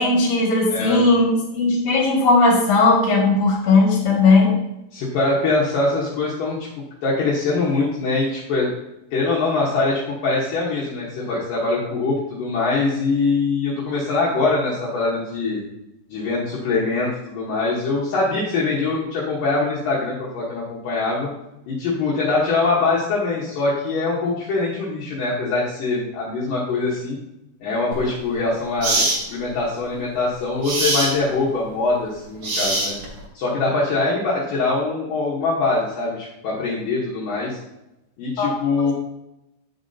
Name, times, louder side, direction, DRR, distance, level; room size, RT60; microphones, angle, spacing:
voice 1, 0.0-4.5 38.4-38.5, left 3 dB, 50° left, -2 dB, 2.2 m, -17 dB
voice 2, 0.7-1.0 4.9-6.6 7.0-8.7 9.1-15.6 16.1-21.3 21.7-27.2 27.6-33.0 33.3-37.6 38.2-38.9, left 3 dB, 75° left, -6 dB, 2.0 m, -23 dB
sound 1, 27.9-28.1 28.8-29.2 30.6-31.1 32.4-33.2, right 2 dB, 90° right, 1.3 m, -22 dB
9.4 x 7.1 x 2.8 m, 0.90 s
omnidirectional pair, 5.7 m